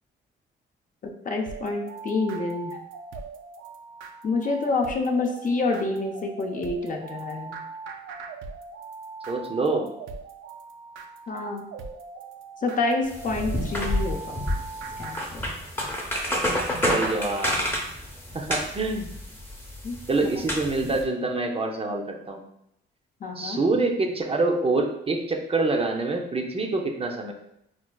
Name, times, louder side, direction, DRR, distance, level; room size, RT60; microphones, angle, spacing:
voice 1, 1.0-2.8 4.2-7.6 11.3-11.7 12.6-14.4 15.0-15.4 19.8-20.0 23.2-23.6, left 3 dB, 40° left, 3 dB, 0.6 m, -28 dB
sound 1, 1.4-15.3, right 4 dB, 90° right, 0.4 m, -40 dB
voice 2, 9.3-9.9 16.9-17.7 18.3-19.1 20.1-22.4 23.4-27.3, right 3 dB, 30° right, 2 dB, 0.5 m, -26 dB
sound 2, 13.0-21.0, equal, 10° left, 0.8 m, -29 dB
4.5 x 2.4 x 2.2 m, 0.79 s
cardioid pair, 90°, 20 cm